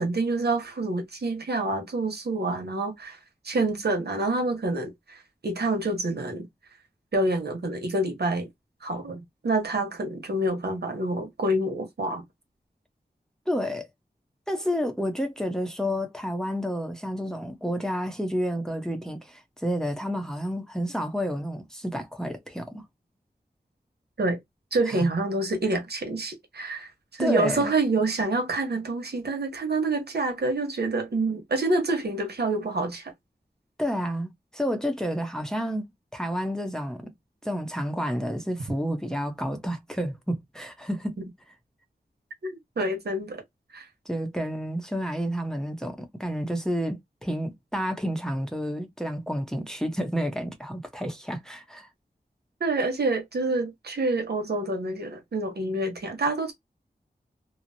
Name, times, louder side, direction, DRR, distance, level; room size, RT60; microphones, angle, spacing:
voice 1, 0.0-3.2 3.4-6.5 7.1-8.5 8.8-12.2 24.2-24.4 24.7-33.1 42.4-43.4 43.7-43.9 52.6-56.5, right 2 dB, 80° right, 1.0 m, -27 dB
voice 2, 13.5-13.9 14.5-22.8 24.9-25.1 27.2-27.7 33.8-37.1 37.4-41.2 44.1-51.9, equal, 5° left, 0.7 m, -30 dB
3.0 x 2.0 x 2.6 m
wide cardioid pair, 55°, 17 cm